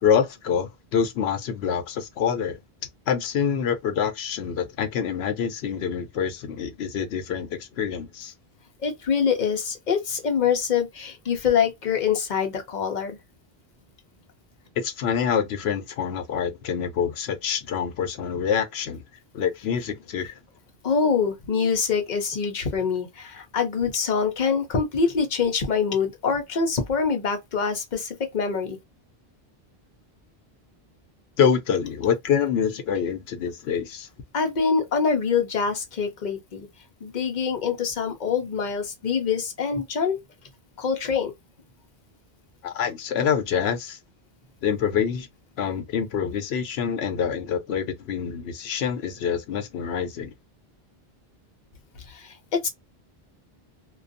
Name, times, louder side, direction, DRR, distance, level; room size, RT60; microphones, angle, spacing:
voice 1, 0.0-2.6 3.1-8.3 14.8-19.0 19.3-20.3 31.4-34.1 42.6-44.0 44.6-45.3 45.6-50.3, left 7 dB, 80° left, 0.8 m, -26 dB
voice 2, 8.8-13.2 20.8-28.8 34.3-36.7 37.0-40.2 40.8-41.3 52.1-52.7, left 6 dB, 50° left, 0.7 m, -25 dB
2.5 x 2.3 x 2.5 m
omnidirectional pair, 1.1 m